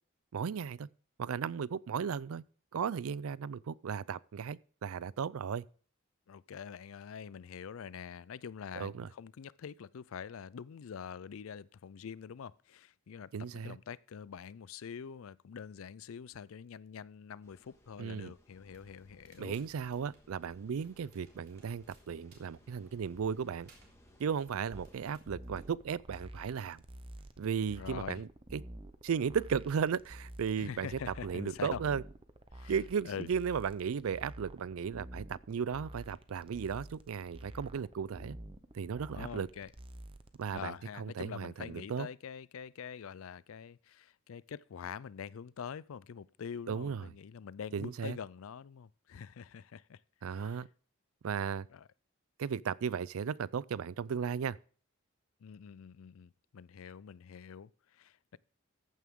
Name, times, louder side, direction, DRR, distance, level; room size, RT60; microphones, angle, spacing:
voice 1, 0.3-0.9 1.2-2.4 2.7-5.6 8.8-9.1 13.3-13.8 18.0-18.3 19.4-23.7 24.2-26.8 27.4-28.6 29.0-30.9 31.2-32.0 32.7-38.4 38.7-39.5 40.4-42.1 46.7-47.0 47.7-48.2 50.2-50.7 51.2-51.7 52.4-54.6, right 6 dB, 80° right, 0.4 m, -35 dB
voice 2, 6.3-19.6 27.8-28.2 30.6-31.8 32.5-32.7 33.0-33.3 39.1-39.7 40.5-50.6 51.7-51.9 55.4-58.4, left 7 dB, 75° left, 0.4 m, -45 dB
sound 1, 17.4-25.1, left 1 dB, 15° left, 1.7 m, -65 dB
Crackle, 18.5-27.9, right 1 dB, 45° right, 3.4 m, -63 dB
sound 2, 24.7-40.6, right 1 dB, 25° right, 0.7 m, -50 dB
14.5 x 9.2 x 3.7 m
head